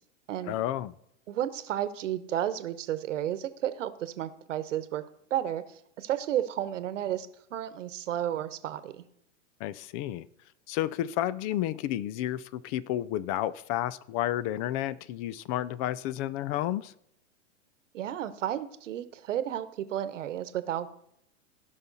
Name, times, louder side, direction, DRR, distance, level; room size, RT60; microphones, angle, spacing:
voice 1, 0.5-0.9 9.6-10.3 10.7-16.9, left 13 dB, 30° left, 0.4 m, -31 dB
voice 2, 1.3-5.0 5.3-9.0 17.9-20.9, right 11 dB, 70° right, 1.1 m, -32 dB
17.0 x 5.7 x 4.0 m
hypercardioid pair, 115°, 38 cm